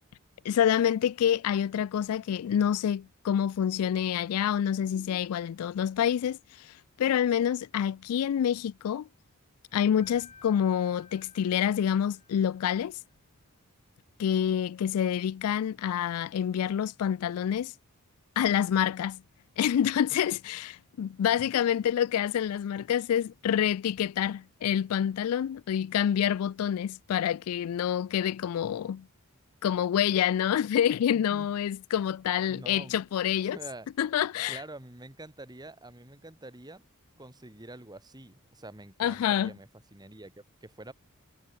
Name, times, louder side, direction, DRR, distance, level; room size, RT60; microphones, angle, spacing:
voice 1, 0.4-9.1 9.7-13.0 14.2-17.7 18.4-19.2 19.6-29.1 29.6-33.6 34.0-34.6 39.0-39.5, left 9 dB, 75° left, 0.3 m, -27 dB
sound 1, 10.0-12.9, left 4 dB, 30° left, 4.4 m, -55 dB
voice 2, 31.1-31.5 32.4-33.0 33.4-33.9 34.5-36.9 37.2-40.9, right 2 dB, 20° right, 2.3 m, -46 dB
head